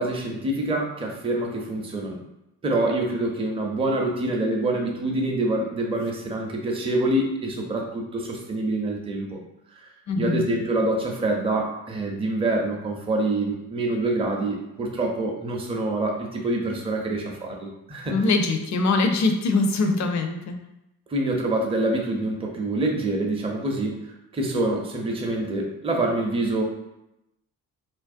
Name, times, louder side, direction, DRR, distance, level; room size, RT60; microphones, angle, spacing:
voice 1, 0.0-2.2 2.6-9.4 9.7-9.9 10.2-18.3 21.1-26.6, right 2 dB, 15° right, 0 dB, 0.5 m, -26 dB
voice 2, 10.1-10.5 18.1-20.6, left 3 dB, 40° left, 5 dB, 0.4 m, -22 dB
2.5 x 2.0 x 2.5 m, 0.87 s
supercardioid pair, 55°, 44 cm